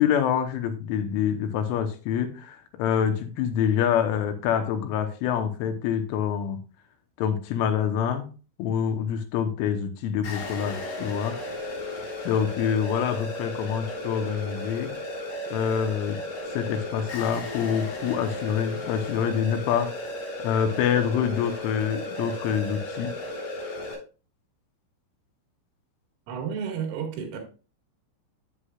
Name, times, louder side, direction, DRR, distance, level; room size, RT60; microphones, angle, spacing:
voice 1, 0.0-6.6 7.2-8.3 8.6-11.4 12.2-15.0 15.5-16.2 16.5-23.2, left 8 dB, 80° left, 3.2 m, -26 dB
sound 1, 10.2-23.9, left 1 dB, 55° left, 5.3 m, -35 dB
voice 2, 26.3-27.4, right 7 dB, 85° right, 4.4 m, -31 dB
9.7 x 8.1 x 2.3 m
omnidirectional pair, 5.8 m